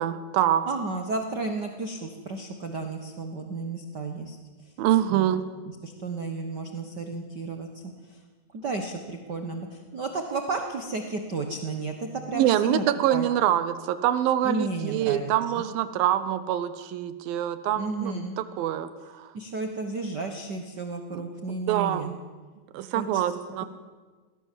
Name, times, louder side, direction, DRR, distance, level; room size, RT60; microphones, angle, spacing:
voice 1, 0.0-0.7 4.8-5.4 12.3-19.3 21.1-21.3 21.7-22.1 22.7-23.7, right 11 dB, 90° right, 12 dB, 2.8 m, -25 dB
voice 2, 0.7-4.4 5.1-5.3 5.8-7.7 8.1-8.2 8.5-12.8 13.1-13.3 14.4-15.3 17.7-18.3 19.3-22.1 22.9-23.2, right 3 dB, 70° right, 5 dB, 1.0 m, -32 dB
20.0 x 17.5 x 7.5 m, 1.4 s
omnidirectional pair, 4.0 m